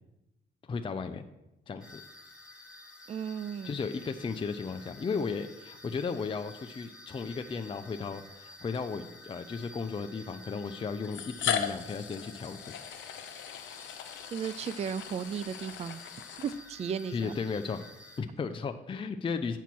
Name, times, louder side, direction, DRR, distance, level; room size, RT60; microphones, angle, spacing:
voice 1, 0.7-1.2 1.7-2.0 3.6-12.7 17.1-17.8 18.2-19.6, left 5 dB, 25° left, 7 dB, 0.5 m, -35 dB
sound 1, 1.8-18.2, left 2 dB, 5° right, 1.8 m, -51 dB
voice 2, 3.1-3.8 14.3-16.0 16.4-17.3, right 7 dB, 35° right, 16 dB, 0.4 m, -35 dB
sound 2, 7.6-7.7 8.7-8.8 10.0-10.1 11.0-17.0, left 9 dB, 80° left, 0.7 m, -38 dB
8.2 x 4.5 x 6.1 m, 0.91 s
cardioid pair, 80°, 19 cm